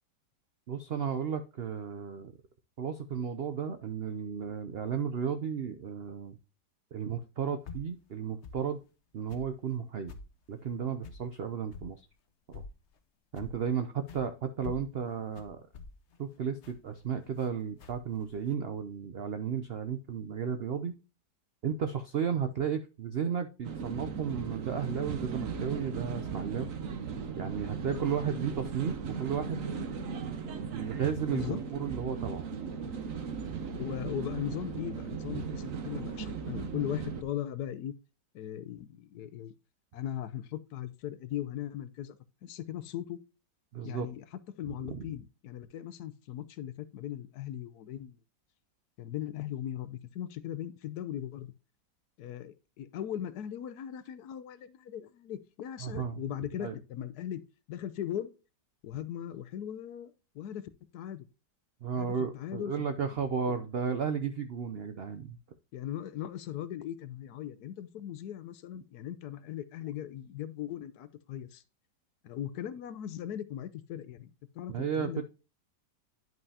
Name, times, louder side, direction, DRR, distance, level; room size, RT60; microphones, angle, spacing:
voice 1, 0.7-2.3 2.8-6.4 6.9-8.8 9.1-10.1 10.5-12.1 12.5-12.6 13.3-15.6 16.2-21.0 21.6-26.7 27.4-29.7 30.6-32.5 43.7-44.1 44.7-45.1 55.8-56.2 56.6-56.8 61.8-65.4 74.7-75.2, right 7 dB, 80° right, 0.5 m, -34 dB
sound 1, 7.7-7.9 8.4-8.7 9.3-9.5 10.1-10.3 11.0-11.3 11.7-11.9 12.5-12.8 13.4-13.7 14.1-14.3 14.6-17.5 17.8-18.5, left 4 dB, 50° left, 1.0 m, -46 dB
sound 2, 23.6-37.2, right 6 dB, 55° right, 1.1 m, -37 dB
voice 2, 33.7-37.9 38.3-39.5 39.9-42.2 42.4-43.2 43.8-44.2 44.6-48.2 49.0-51.5 52.2-57.4 57.7-58.3 58.8-61.3 61.9-62.9 65.7-71.6 72.2-74.3 74.5-75.2, left 11 dB, 70° left, 1.1 m, -38 dB
10.5 x 5.5 x 2.8 m
omnidirectional pair, 1.9 m